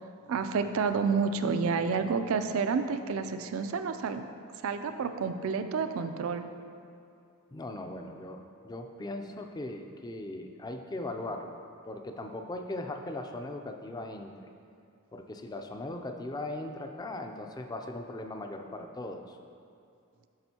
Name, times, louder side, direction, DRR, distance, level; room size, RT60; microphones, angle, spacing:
voice 1, 0.3-4.3 4.6-6.5, right 5 dB, 70° right, 9 dB, 0.4 m, -29 dB
voice 2, 7.5-11.6 11.9-14.5 15.1-19.4, left 2 dB, 20° left, 5 dB, 0.3 m, -39 dB
8.7 x 6.0 x 2.8 m, 2.4 s
head